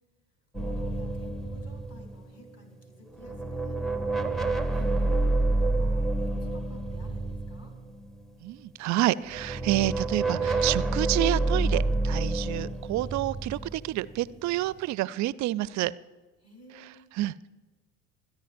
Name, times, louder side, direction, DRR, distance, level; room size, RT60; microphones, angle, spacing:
voice 1, 0.5-4.0 4.6-7.8 16.4-17.1, left 1 dB, 35° left, 1 dB, 3.8 m, -53 dB
sound 1, 0.5-2.8 3.1-8.3 9.2-14.7, right 2 dB, ahead, 0.7 m, -29 dB
voice 2, 8.4-15.9 17.2-17.5, right 16 dB, 40° right, 19 dB, 0.5 m, -28 dB
26.5 x 10.5 x 2.6 m, 1.2 s
hypercardioid pair, 65°, 45 cm